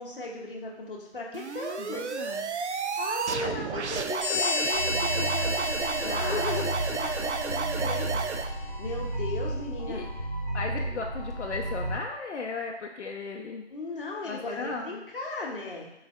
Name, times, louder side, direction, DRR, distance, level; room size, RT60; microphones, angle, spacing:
voice 1, 0.0-2.3 3.0-6.4 6.9-8.2 8.8-10.0 10.7-10.8 13.7-15.9, left 2 dB, 50° left, -2 dB, 0.8 m, -37 dB
sound 1, 1.3-8.5, right 5 dB, 80° right, 0.5 m, -32 dB
voice 2, 1.8-2.4 3.4-3.5 6.0-6.7 9.9-10.1 10.5-13.7 14.2-15.0, left 4 dB, 80° left, 2 dB, 0.5 m, -35 dB
sound 2, 4.2-8.5, left 3 dB, 25° left, 0.6 m, -33 dB
sound 3, 4.7-11.9, right 1 dB, 35° right, 0.7 m, -33 dB
3.9 x 2.1 x 4.1 m, 0.89 s
figure-of-eight pair, 170°, 34 cm